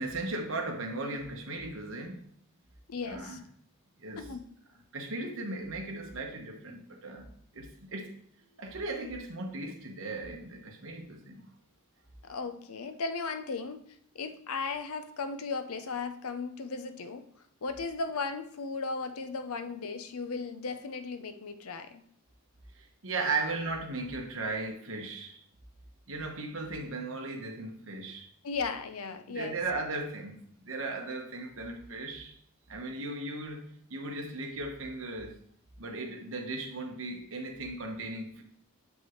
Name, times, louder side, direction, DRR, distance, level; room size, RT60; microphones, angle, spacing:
voice 1, 0.0-2.2 3.1-3.4 4.0-4.2 4.9-7.3 7.5-8.1 8.4-11.4 22.7-25.4 26.1-28.3 29.3-32.3 32.7-33.6 33.9-35.3 35.8-38.4, right 2 dB, 65° right, 2 dB, 1.2 m, -37 dB
voice 2, 2.9-3.4 4.2-4.4 12.2-13.8 14.1-17.3 17.6-22.0 28.4-29.6, left 4 dB, 90° left, 9 dB, 0.7 m, -36 dB
7.5 x 5.4 x 3.1 m, 0.63 s
head